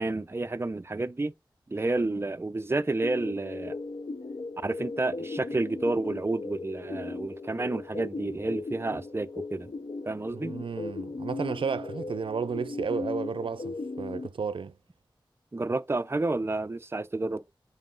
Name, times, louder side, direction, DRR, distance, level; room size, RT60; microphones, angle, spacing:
voice 1, 0.0-1.3 1.7-3.8 4.6-9.7 10.0-10.5 15.5-17.4, right 2 dB, 30° right, 0.5 m, -30 dB
sound 1, 3.0-14.3, left 3 dB, 90° left, 0.6 m, -37 dB
voice 2, 10.3-14.7, right 5 dB, 90° right, 0.4 m, -33 dB
5.7 x 4.8 x 3.8 m
wide cardioid pair, 65°, 8 cm